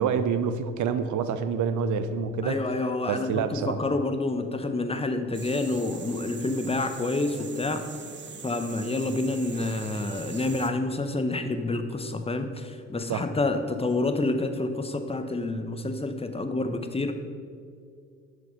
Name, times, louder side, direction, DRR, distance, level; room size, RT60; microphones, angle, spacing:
voice 1, 0.0-2.6 3.1-3.8 13.1-13.2, right 6 dB, 55° right, 11 dB, 0.9 m, -27 dB
voice 2, 2.4-7.8 8.4-17.1, left 2 dB, 15° left, 7 dB, 1.1 m, -28 dB
sound 1, 5.3-10.7, right 5 dB, 30° right, 1.0 m, -43 dB
12.0 x 6.6 x 5.1 m, 2.3 s
hypercardioid pair, 50°, 35 cm